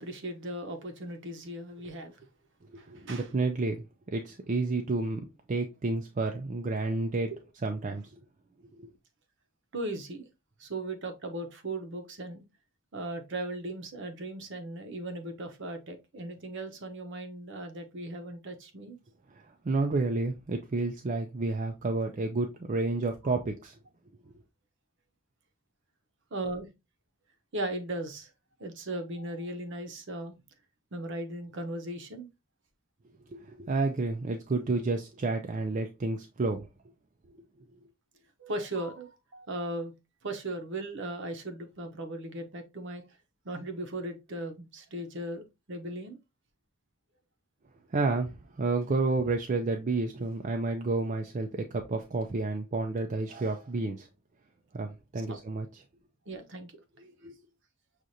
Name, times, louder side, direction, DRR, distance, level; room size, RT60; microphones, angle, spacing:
voice 1, 0.0-2.3 2.8-3.3 7.3-7.4 9.7-10.3 10.6-12.4 12.9-19.0 23.2-23.4 26.3-26.7 27.5-28.3 28.6-30.4 30.9-32.3 38.4-39.9 40.2-43.0 43.4-46.2 55.3-55.4 56.3-56.7, right 1 dB, 55° right, 0.8 m, -37 dB
voice 2, 2.7-3.8 4.1-7.3 7.6-8.1 8.8-8.9 19.6-23.7 33.3-36.7 47.9-54.1 54.7-55.7 57.2-57.4, right 3 dB, 35° right, 0.4 m, -30 dB
6.3 x 2.5 x 2.7 m
head